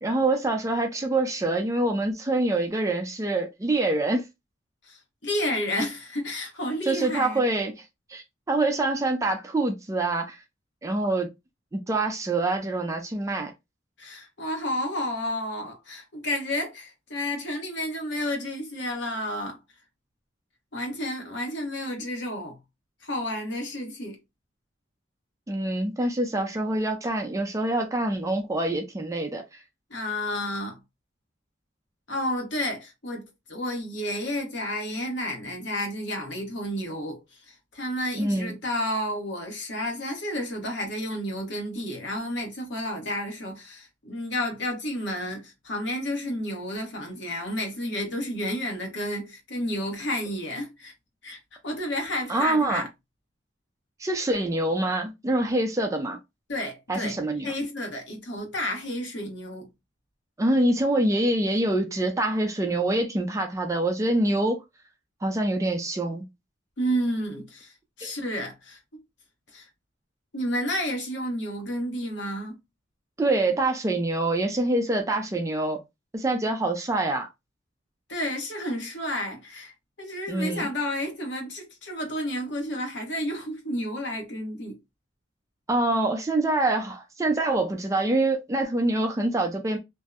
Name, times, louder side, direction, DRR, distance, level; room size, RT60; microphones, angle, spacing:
voice 1, 0.0-4.3 6.9-7.7 8.1-10.4 10.8-11.3 11.7-13.5 25.5-29.4 38.2-38.5 52.3-52.8 54.0-56.2 56.9-57.5 60.4-64.6 65.2-66.3 68.0-68.1 73.2-75.8 76.1-77.3 80.3-80.6 85.7-89.8, right 2 dB, 15° right, 0.4 m, -25 dB
voice 2, 4.8-7.4 14.0-19.6 20.7-22.6 23.0-24.2 29.9-30.8 32.1-50.9 51.2-52.9 56.5-57.1 57.4-59.7 66.8-69.0 69.5-69.7 70.3-72.6 78.1-79.7 80.0-84.8, left 1 dB, 65° left, 0.9 m, -31 dB
2.6 x 2.0 x 2.3 m
head